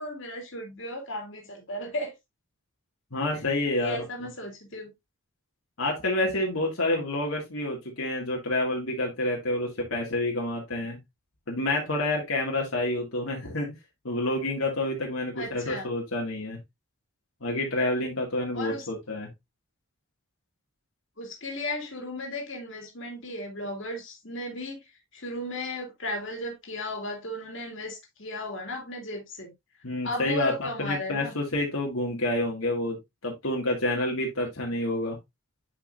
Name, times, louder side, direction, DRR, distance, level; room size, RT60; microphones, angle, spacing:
voice 1, 0.0-2.1 3.8-4.9 15.4-15.9 18.5-18.9 21.2-24.8 25.1-29.5 30.0-31.4, left 1 dB, 60° left, 2.5 m, -35 dB
voice 2, 3.1-4.0 5.8-11.0 11.5-13.7 14.0-16.6 17.4-19.3 29.8-35.2, left 1 dB, 80° left, 2.1 m, -28 dB
9.7 x 5.0 x 2.6 m
head